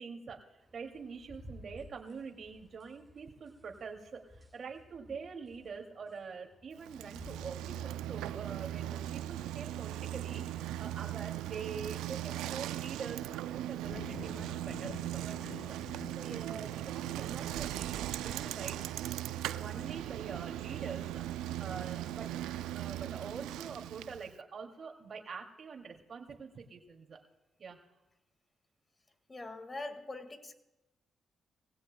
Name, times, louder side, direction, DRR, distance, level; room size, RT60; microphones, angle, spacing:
voice 1, 0.0-15.8 16.2-18.8 19.5-27.2 27.6-27.8, right 5 dB, 55° right, 2 dB, 2.6 m, -45 dB
sound 1, 0.6-8.4, equal, 5° right, 6.2 m, -56 dB
Bicycle, 6.8-24.3, right 13 dB, 90° right, 0.4 m, -39 dB
sound 2, 13.9-22.4, left 7 dB, 90° left, 1.2 m, -53 dB
voice 2, 29.3-30.6, left 2 dB, 30° left, 8 dB, 2.0 m, -43 dB
20.5 x 16.0 x 2.3 m, 0.98 s
supercardioid pair, 55°, 0 cm